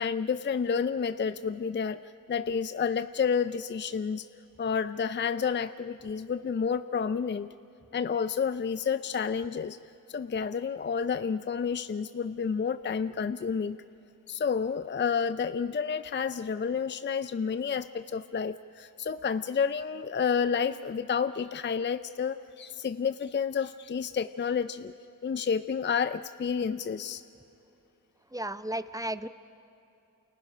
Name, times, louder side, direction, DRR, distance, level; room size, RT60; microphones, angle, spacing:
voice 1, 0.0-4.3 4.6-7.5 7.9-9.8 10.1-13.8 14.3-24.9 25.2-27.2, left 6 dB, 35° left, 12 dB, 0.5 m, -30 dB
voice 2, 28.3-29.3, right 1 dB, 10° right, 12 dB, 0.7 m, -34 dB
29.5 x 28.5 x 5.6 m, 2.8 s
wide cardioid pair, 85°, 34 cm